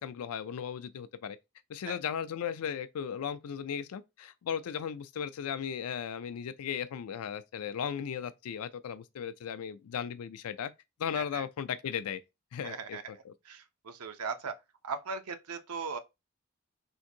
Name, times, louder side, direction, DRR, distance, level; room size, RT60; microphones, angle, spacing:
voice 1, 0.0-1.4 1.7-10.7 11.0-12.2 12.5-13.3, left 8 dB, 85° left, 0.4 m, -36 dB
voice 2, 12.6-13.0 13.5-14.6 14.8-16.0, right 5 dB, 85° right, 0.6 m, -38 dB
3.6 x 2.6 x 2.7 m
head